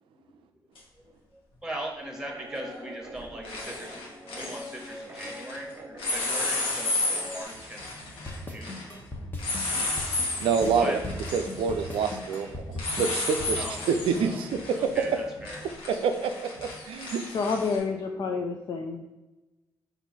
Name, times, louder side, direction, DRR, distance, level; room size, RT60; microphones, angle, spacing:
sound 1, 0.8-0.9 2.6-2.9 3.2-5.6 6.0-17.8, left 2 dB, 80° left, 1.1 m, -33 dB
voice 1, 1.6-4.0 4.3-7.0 7.3-7.9 8.3-8.8 10.7-11.0 13.5-13.9 14.1-14.4 14.7-15.6, right 1 dB, 5° right, 1 dB, 1.2 m, -38 dB
Guitar, 2.0-7.4, equal, 25° right, 0.7 m, -43 dB
sound 2, 8.3-13.5, left 2 dB, 25° left, 1.0 m, -37 dB
voice 2, 10.4-11.0 11.3-14.6 15.0-15.1 16.0-16.3 16.6-17.2, right 6 dB, 80° right, 7 dB, 0.4 m, -27 dB
voice 3, 17.1-19.2, left 4 dB, 55° left, 3 dB, 0.4 m, -30 dB
4.4 x 2.6 x 4.1 m, 1.1 s
supercardioid pair, 60°, 9 cm